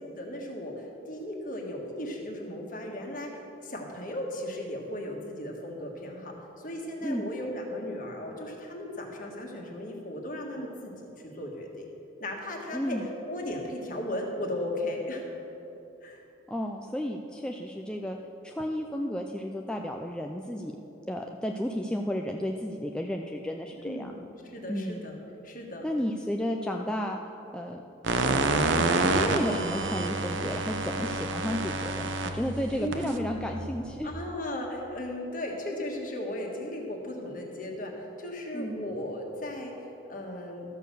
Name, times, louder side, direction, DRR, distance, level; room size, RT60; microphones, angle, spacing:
voice 1, 0.0-6.3 6.6-10.9 11.2-11.8 12.2-13.0 13.3-15.2 16.0-16.2 23.8-25.1 25.4-25.8 32.8-33.1 34.0-40.6, left 1 dB, 45° left, 0 dB, 1.5 m, -36 dB
voice 2, 12.7-13.1 16.5-18.2 18.4-20.8 21.1-24.1 24.7-25.0 25.8-27.2 27.5-27.8 28.1-28.4 28.8-34.1 38.5-38.8, equal, 5° left, 2 dB, 0.3 m, -33 dB
sound 1, 28.0-34.1, right 3 dB, 70° right, 0.7 m, -28 dB
13.0 x 6.4 x 6.8 m, 2.9 s
head